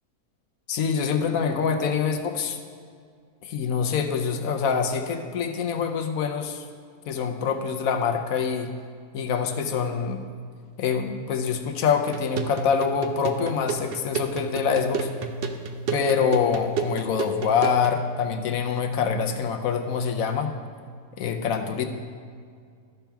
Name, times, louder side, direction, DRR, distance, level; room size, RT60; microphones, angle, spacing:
voice 1, 0.7-2.6 3.4-6.6 7.1-8.7 9.1-10.2 10.8-15.1 15.9-20.5 21.2-21.8, left 6 dB, 70° left, 6 dB, 1.1 m, -25 dB
sound 1, 12.1-18.0, right 5 dB, 60° right, 0.6 m, -32 dB
13.5 x 5.8 x 3.5 m, 2.1 s
omnidirectional pair, 1.6 m